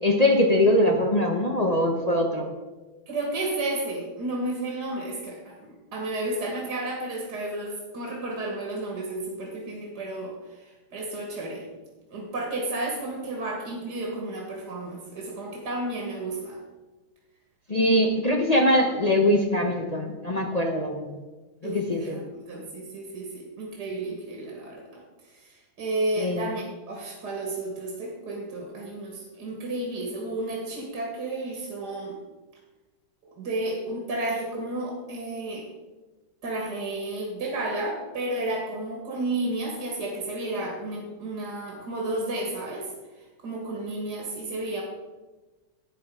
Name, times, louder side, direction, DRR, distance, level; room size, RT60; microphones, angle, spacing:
voice 1, 0.0-2.5 17.7-21.2 21.6-22.2 26.2-26.5, left 1 dB, 30° left, 1 dB, 0.9 m, -22 dB
voice 2, 3.1-11.6 12.1-16.6 21.6-22.2 22.5-25.0 25.3-32.2 33.4-35.7 36.4-42.9 43.4-44.8, right 2 dB, 70° right, -1 dB, 2.5 m, -32 dB
12.0 x 9.3 x 4.8 m, 1.2 s
omnidirectional pair, 1.8 m